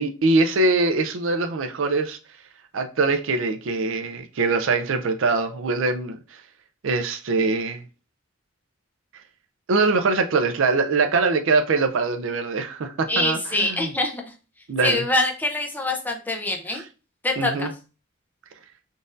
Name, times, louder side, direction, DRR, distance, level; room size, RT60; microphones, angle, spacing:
voice 1, 0.0-2.2 2.7-6.2 6.8-7.8 9.7-13.9 14.7-15.0 17.4-17.7, right 3 dB, 65° right, 0.5 m, -23 dB
voice 2, 13.1-14.3 14.8-16.8 17.2-17.7, left 2 dB, 10° left, 0.5 m, -24 dB
3.8 x 2.6 x 2.5 m
head